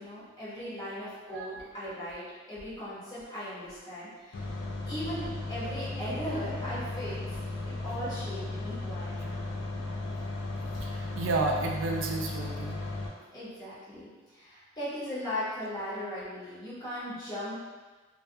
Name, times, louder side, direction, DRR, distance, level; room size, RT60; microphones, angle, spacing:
voice 1, 0.0-4.4 4.9-7.2 7.8-9.5 13.3-17.6, equal, 20° left, -10 dB, 0.9 m, -38 dB
sound 1, 4.3-13.1, left 2 dB, 60° left, 0.4 m, -36 dB
voice 2, 10.8-12.8, right 3 dB, 70° right, 0 dB, 0.3 m, -31 dB
2.3 x 2.2 x 2.6 m, 1.3 s
head